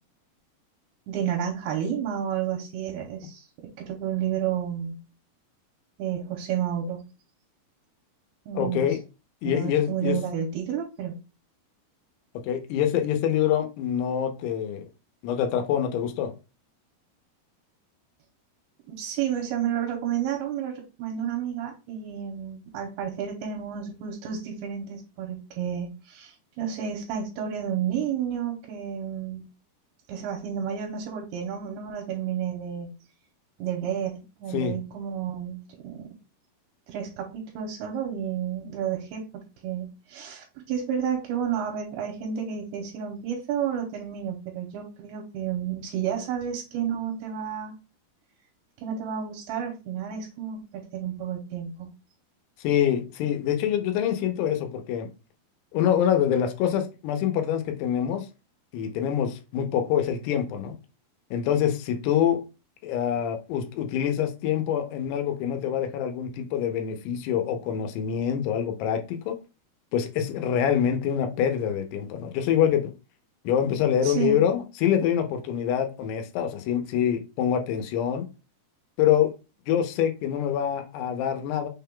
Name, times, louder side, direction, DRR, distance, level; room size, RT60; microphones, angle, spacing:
voice 1, 1.1-5.0 6.0-7.0 8.5-8.9 9.4-11.2 18.9-29.4 30.1-32.9 33.6-36.1 36.9-47.7 48.8-51.9 74.0-74.4, right 9 dB, 80° right, 2.7 m, -31 dB
voice 2, 8.5-9.0 9.4-10.2 12.5-14.8 15.2-16.3 34.5-34.8 52.6-55.1 55.7-58.3 58.7-60.8 61.3-62.4 62.8-69.4 69.9-72.8 73.4-78.3 79.0-79.3 79.7-81.7, left 9 dB, 90° left, 2.8 m, -25 dB
6.1 x 2.2 x 3.7 m
omnidirectional pair, 4.6 m